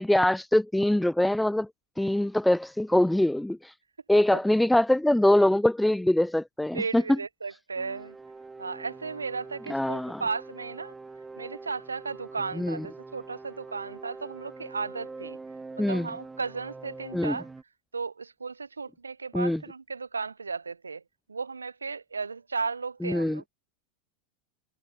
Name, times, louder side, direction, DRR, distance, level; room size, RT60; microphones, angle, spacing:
voice 1, 0.0-1.7 2.0-3.7 4.1-7.2 9.7-10.2 12.6-12.9 15.8-16.1 17.1-17.4 19.3-19.6 23.0-23.4, left 1 dB, 5° left, 0.4 m, -23 dB
voice 2, 6.7-8.2 8.6-10.9 11.4-15.4 15.8-17.5 17.9-21.0 21.3-23.5, right 4 dB, 85° right, 0.5 m, -35 dB
sound 1, 7.7-17.6, right 3 dB, 15° right, 2.2 m, -44 dB
figure-of-eight pair, 90°, 0 cm